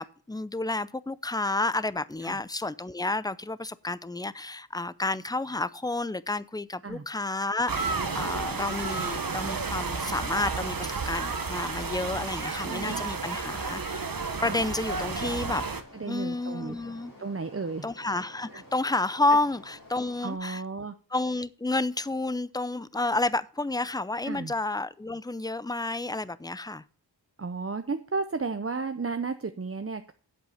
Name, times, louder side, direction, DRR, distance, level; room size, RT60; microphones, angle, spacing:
voice 1, 0.0-15.6 16.0-17.1 17.8-20.6 21.1-26.8, left 2 dB, 10° left, 0.5 m, -30 dB
sound 1, 7.7-15.8, right 4 dB, 50° right, 1.1 m, -32 dB
voice 2, 12.6-13.0 14.4-14.6 15.9-16.8 17.2-17.9 18.5-18.6 20.2-20.9 24.2-24.5 27.4-30.1, right 4 dB, 30° right, 0.7 m, -33 dB
sound 2, 14.1-20.3, left 1 dB, 50° left, 3.6 m, -51 dB
8.1 x 8.0 x 5.6 m
wide cardioid pair, 55°, 43 cm